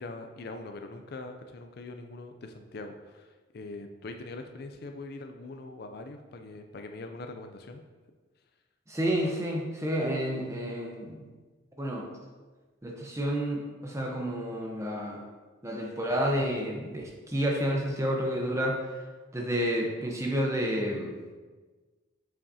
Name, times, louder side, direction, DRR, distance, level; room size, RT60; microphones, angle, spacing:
voice 1, 0.0-7.8, left 2 dB, 50° left, 6 dB, 0.4 m, -42 dB
voice 2, 8.9-11.2 11.8-12.1 12.8-15.2 15.6-18.8 19.3-21.2, equal, 15° right, -1 dB, 0.8 m, -30 dB
7.1 x 5.7 x 2.7 m, 1.3 s
head